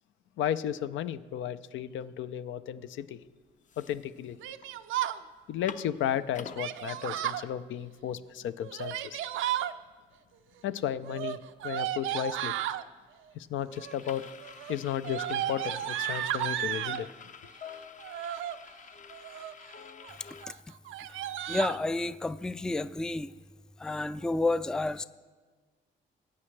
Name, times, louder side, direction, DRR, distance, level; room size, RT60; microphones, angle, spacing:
voice 1, 0.4-3.2 3.8-4.4 5.5-9.2 10.6-11.4 11.6-12.5 13.3-14.2 14.7-17.1, left 10 dB, 75° left, 13 dB, 0.6 m, -34 dB
sound 1, 3.0-3.1 3.5-4.7 5.1-5.2 5.4-6.6 7.2-7.3 7.6-20.5, left 6 dB, 40° left, 0.7 m, -49 dB
Yell, 4.4-5.2 6.6-7.4 8.6-9.7 11.0-12.8 13.7-14.1 14.4-17.1 18.0-18.6 19.1-19.6 20.0-20.2 20.4-20.5 20.9-21.8, right 12 dB, 80° right, 0.6 m, -33 dB
voice 2, 21.5-23.3 23.8-25.0, left 2 dB, 5° left, 14 dB, 0.3 m, -30 dB
21.0 x 8.6 x 3.3 m, 1.4 s
cardioid pair, 90°, 20 cm